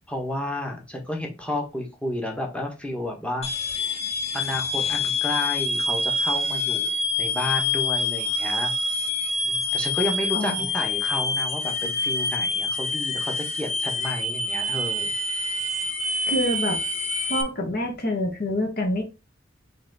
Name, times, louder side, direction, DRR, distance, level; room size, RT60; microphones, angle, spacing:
voice 1, 0.1-3.5 4.3-8.7 9.4-15.1, left 1 dB, 5° left, 1 dB, 1.1 m, -31 dB
sound 1, 3.4-17.4, left 2 dB, 35° left, 0.8 m, -26 dB
voice 2, 10.3-10.7 16.3-16.8 17.3-19.0, left 1 dB, 55° left, 2 dB, 1.4 m, -26 dB
4.1 x 3.2 x 3.9 m, 0.28 s
head